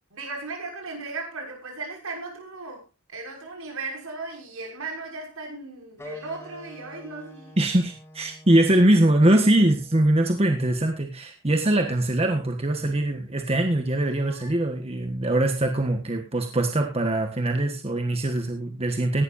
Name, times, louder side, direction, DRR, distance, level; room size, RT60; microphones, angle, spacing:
voice 1, 0.1-2.9 3.1-7.6 14.2-14.6, right 3 dB, 75° right, 6.0 m, -36 dB
sound 1, 6.0-11.1, equal, 10° left, 3.3 m, -48 dB
voice 2, 7.6-19.2, right 1 dB, 30° right, 1.5 m, -22 dB
17.5 x 12.0 x 2.6 m
head